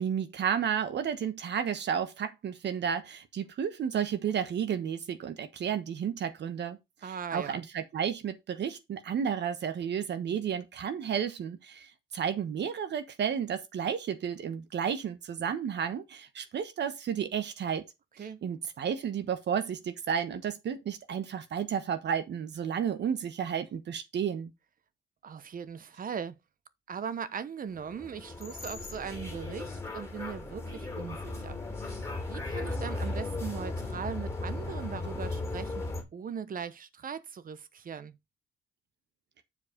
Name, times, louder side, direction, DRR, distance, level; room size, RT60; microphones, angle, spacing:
voice 1, 0.0-6.8 7.0-17.8 18.2-24.5, right 8 dB, 60° right, 1.2 m, -32 dB
voice 2, 7.0-7.6 18.2-18.4 25.2-26.3 26.9-31.9 32.3-35.9 36.1-38.2, right 7 dB, 45° right, 1.0 m, -39 dB
sound 1, 27.8-36.0, left 2 dB, 15° left, 3.1 m, -36 dB
7.4 x 4.8 x 5.1 m
cardioid pair, 90°, 20 cm